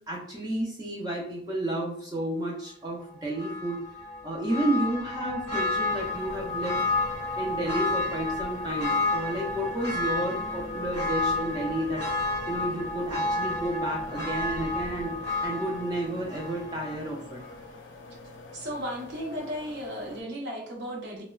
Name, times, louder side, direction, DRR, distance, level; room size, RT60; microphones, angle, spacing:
voice 1, 0.1-6.8 7.4-12.1 12.5-17.4, right 1 dB, 20° right, -2 dB, 0.4 m, -31 dB
Church bell, 3.4-17.0 17.4-17.5, left 2 dB, 90° right, 1.1 m, -31 dB
sound 1, 5.9-20.2, left 3 dB, 75° left, 0.4 m, -47 dB
voice 2, 18.5-21.2, equal, 65° right, -2 dB, 0.8 m, -35 dB
2.9 x 2.1 x 2.2 m, 0.65 s
head